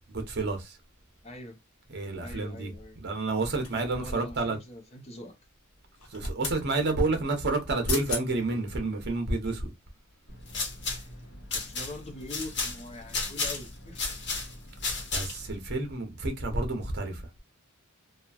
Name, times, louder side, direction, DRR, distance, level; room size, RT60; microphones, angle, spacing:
voice 1, 0.1-0.8 1.9-4.6 6.1-9.7 15.1-17.2, right 2 dB, 50° right, 0.9 m, -30 dB
voice 2, 1.2-1.6 2.2-3.0 4.0-5.4 10.9-11.1 11.5-14.6, left 1 dB, 30° left, 0.7 m, -43 dB
sound 1, 3.6-4.2 5.9-6.6 7.6-7.7 7.9-8.3 8.8-8.9, left 5 dB, 80° left, 1.1 m, -35 dB
sound 2, 10.3-15.6, left 3 dB, 55° left, 1.1 m, -34 dB
3.0 x 2.3 x 2.4 m
head